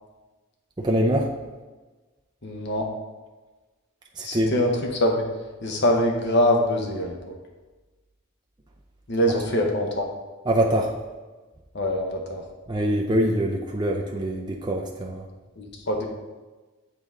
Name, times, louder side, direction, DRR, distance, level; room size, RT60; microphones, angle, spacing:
voice 1, 0.8-1.3 4.2-4.5 10.5-10.9 12.7-15.2, right 1 dB, 20° right, 0 dB, 0.4 m, -24 dB
voice 2, 2.4-2.9 4.2-5.3 5.6-7.3 9.1-10.1 11.7-12.4 15.6-16.1, left 1 dB, 50° left, 2 dB, 0.9 m, -24 dB
8.1 x 3.9 x 3.7 m, 1.2 s
head